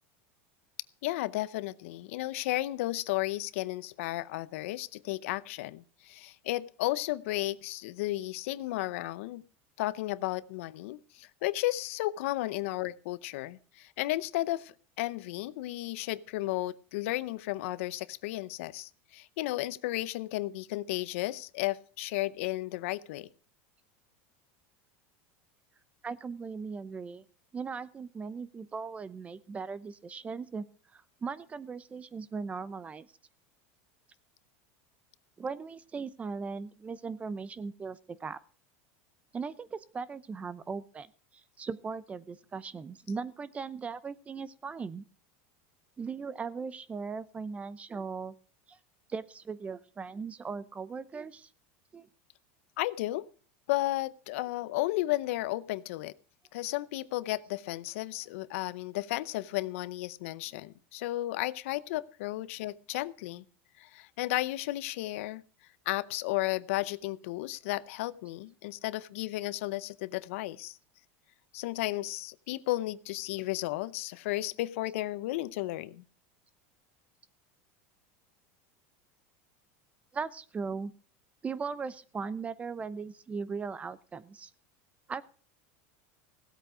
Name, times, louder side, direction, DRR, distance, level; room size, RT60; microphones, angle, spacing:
voice 1, 1.0-9.4 9.8-23.3 52.8-53.3 53.7-56.1 56.5-63.4 63.8-65.4 65.9-70.8 71.5-76.0, left 17 dB, 75° left, 18 dB, 0.6 m, -33 dB
voice 2, 26.0-27.2 27.5-30.7 30.9-33.1 35.4-38.4 39.3-45.0 46.0-48.3 48.7-48.8 49.1-51.5 51.9-52.1 80.1-80.9 81.4-84.5 85.1-85.2, right 5 dB, 20° right, 18 dB, 0.7 m, -38 dB
16.5 x 8.1 x 4.9 m, 0.42 s
supercardioid pair, 135°, 7 cm